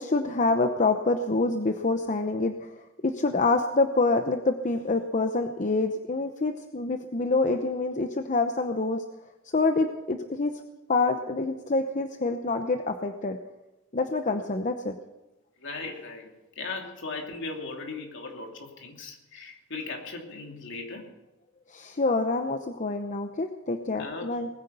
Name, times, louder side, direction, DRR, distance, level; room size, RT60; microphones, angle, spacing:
voice 1, 0.0-2.7 3.0-9.0 9.5-10.5 10.9-13.4 13.9-15.0 21.7-24.5, left 3 dB, 35° left, 6 dB, 0.8 m, -26 dB
voice 2, 15.6-21.1 24.0-24.3, left 3 dB, 60° left, 2 dB, 2.8 m, -38 dB
20.0 x 9.7 x 6.8 m, 1.0 s
head